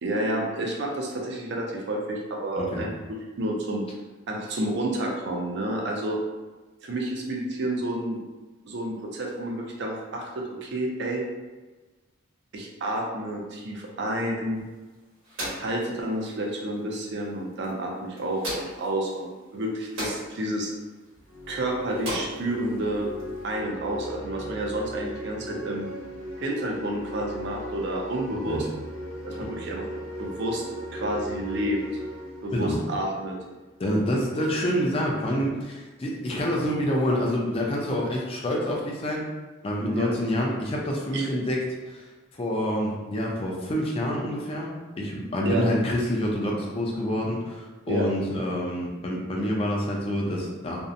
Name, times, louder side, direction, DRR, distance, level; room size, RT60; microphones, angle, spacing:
voice 1, 0.0-2.9 3.4-3.8 4.3-6.2 6.8-8.2 8.6-11.2 12.5-14.7 15.6-20.7 21.5-23.1 23.4-25.9 26.4-28.7 29.2-29.9 30.2-30.6 30.9-31.8 32.4-33.4 39.9-40.1 41.1-41.3 45.4-45.7 47.9-48.1, right 1 dB, 55° right, -1 dB, 0.4 m, -30 dB
sound 1, 14.5-23.5, right 1 dB, 75° right, 1.1 m, -40 dB
sound 2, 21.1-33.8, equal, 90° left, 0.6 m, -38 dB
voice 2, 33.8-39.3 39.6-42.1 42.3-50.8, equal, 25° left, -2 dB, 0.4 m, -27 dB
2.6 x 2.0 x 2.5 m, 1.2 s
head